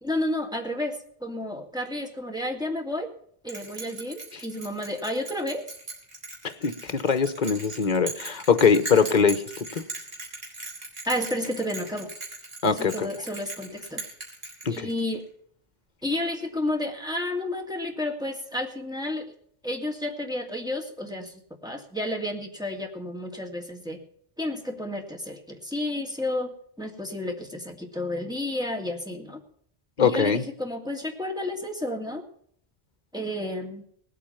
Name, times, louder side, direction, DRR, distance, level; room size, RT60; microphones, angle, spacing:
voice 1, 0.0-3.1 3.4-5.6 11.1-12.1 12.7-14.0 14.7-15.3 16.0-19.3 19.6-24.0 24.4-26.5 26.8-29.4 30.0-32.2 33.1-33.8, left 1 dB, 5° right, 2 dB, 2.1 m, -31 dB
Bell, 3.5-15.1, right 3 dB, 70° right, 4.2 m, -39 dB
voice 2, 6.4-9.8 12.6-13.1 14.6-14.9 30.0-30.4, left 6 dB, 50° left, 11 dB, 1.2 m, -22 dB
19.0 x 8.4 x 5.7 m, 0.62 s
omnidirectional pair, 1.0 m